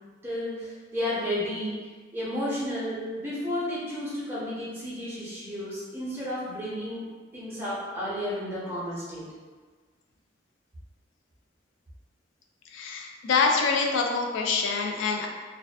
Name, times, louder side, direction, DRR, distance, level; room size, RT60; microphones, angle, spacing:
voice 1, 0.2-1.7 2.1-9.2, left 1 dB, 10° right, -9 dB, 0.7 m, -32 dB
voice 2, 12.7-15.3, left 4 dB, 80° left, 1 dB, 0.3 m, -25 dB
2.5 x 2.2 x 2.3 m, 1.4 s
head